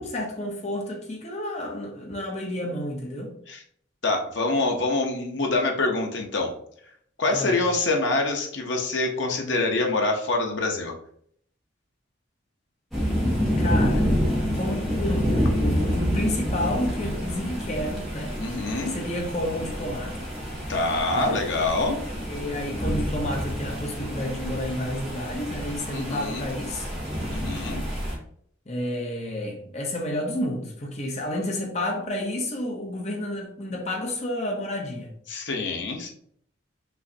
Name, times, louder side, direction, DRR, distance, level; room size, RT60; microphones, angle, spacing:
voice 1, 0.0-3.3 7.3-7.6 13.6-14.1 14.6-15.3 15.6-18.3 18.9-20.2 21.1-21.4 22.3-26.9 28.7-35.1, left 1 dB, 35° left, 0.8 m, -30 dB
voice 2, 4.0-6.5 7.2-11.0 18.4-19.0 20.7-22.1 25.9-26.5 27.3-27.8 35.3-36.1, left 2 dB, 70° left, 0.9 m, -25 dB
sound 1, 12.9-28.1, equal, ahead, 1.7 m, -28 dB
5.6 x 3.1 x 2.8 m
head